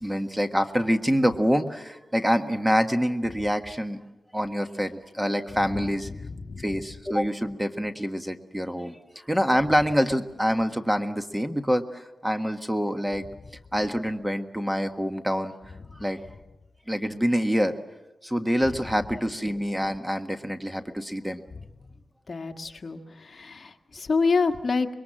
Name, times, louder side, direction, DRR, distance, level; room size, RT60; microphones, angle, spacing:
voice 1, 0.0-4.0 4.3-6.1 6.6-13.3 13.7-15.5 16.0-16.2 16.9-17.7 18.2-21.4, equal, 5° right, 7 dB, 1.5 m, -26 dB
voice 2, 6.1-6.7 22.3-24.9, left 4 dB, 50° left, 5 dB, 1.7 m, -27 dB
25.5 x 22.0 x 7.6 m, 1.1 s
wide cardioid pair, 85°, 0 cm